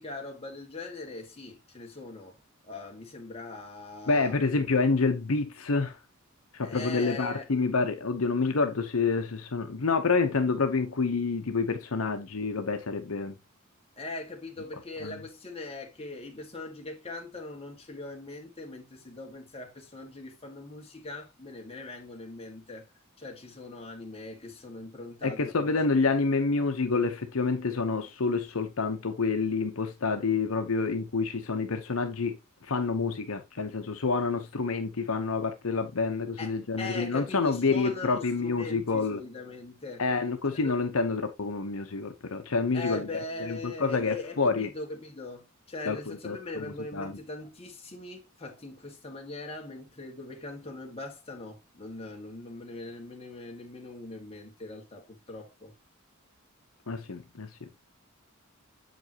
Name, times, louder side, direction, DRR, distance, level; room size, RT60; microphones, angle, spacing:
voice 1, 0.0-4.4 6.6-7.5 14.0-22.9 23.2-25.7 36.4-40.0 40.5-40.7 42.7-55.7, left 2 dB, 30° left, 1.7 m, -41 dB
voice 2, 4.1-6.0 6.5-13.4 15.0-15.2 25.2-32.4 32.6-39.2 40.0-43.1 43.4-44.7 45.9-46.0 46.2-47.1 56.9-57.7, left 4 dB, 75° left, 0.9 m, -28 dB
7.6 x 5.3 x 2.9 m
head